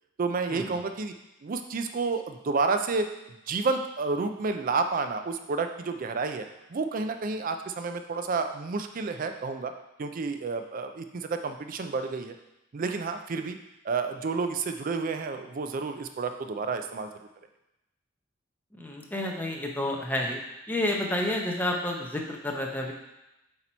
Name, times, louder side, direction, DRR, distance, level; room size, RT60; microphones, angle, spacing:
voice 1, 0.2-1.1 1.4-3.1 3.5-6.4 6.7-9.7 10.0-12.3 12.7-13.6 13.8-17.1, right 4 dB, 45° right, 7 dB, 0.4 m, -30 dB
voice 2, 18.8-20.4 20.7-22.9, left 1 dB, 10° left, 0 dB, 0.8 m, -30 dB
7.9 x 2.9 x 4.4 m, 0.91 s
head